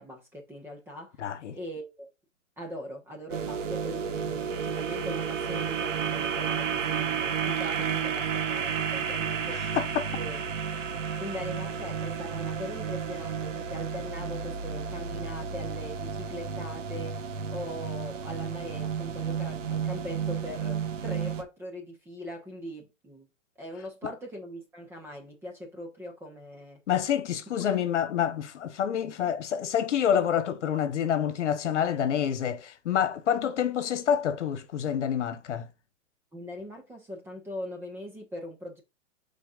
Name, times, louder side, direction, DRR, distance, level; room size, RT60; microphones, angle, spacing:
voice 1, 0.0-1.1 1.5-2.1 2.6-9.6 10.2-10.4 11.2-17.2 17.5-23.3 23.6-26.8 36.3-38.8, equal, 5° right, 1.3 m, -41 dB
voice 2, 1.2-1.6 9.7-10.1 26.9-35.7, left 9 dB, 65° left, 1.4 m, -27 dB
sound 1, 3.3-21.4, right 7 dB, 75° right, 1.6 m, -32 dB
12.5 x 4.4 x 2.5 m
hypercardioid pair, 165°, 38 cm